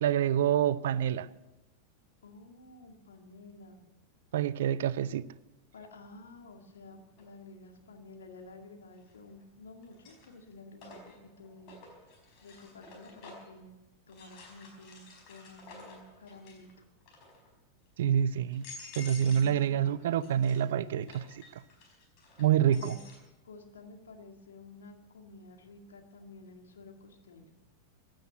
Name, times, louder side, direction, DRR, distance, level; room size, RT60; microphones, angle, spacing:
voice 1, 0.0-1.3 4.3-5.2 18.0-18.7 19.0-21.2 22.4-23.0, right 9 dB, 60° right, 0.5 m, -27 dB
voice 2, 2.2-3.8 5.7-11.7 12.4-13.8 14.1-16.7 19.0-19.8 22.6-23.0 23.4-27.5, left 3 dB, 65° left, 2.2 m, -51 dB
sound 1, 7.2-7.3 9.0-9.4 9.8-13.6 14.1-16.7 17.0-17.5 18.1-18.2 18.5-19.6 19.9-23.2, left 3 dB, 40° left, 4.6 m, -51 dB
16.0 x 10.5 x 7.9 m
figure-of-eight pair, 90°, 0 cm